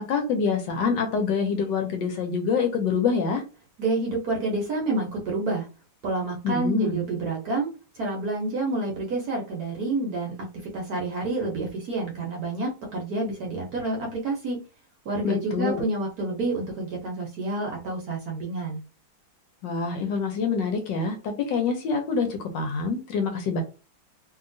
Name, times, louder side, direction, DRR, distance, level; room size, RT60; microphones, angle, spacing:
voice 1, 0.0-3.4 6.4-7.0 15.2-15.8 19.6-23.6, left 5 dB, 70° left, 5 dB, 1.2 m, -26 dB
voice 2, 3.8-5.7 6.0-7.7 7.9-10.3 10.7-14.6 15.0-18.8, right 2 dB, 60° right, -1 dB, 1.1 m, -28 dB
2.9 x 2.8 x 2.6 m, 0.32 s
omnidirectional pair, 2.2 m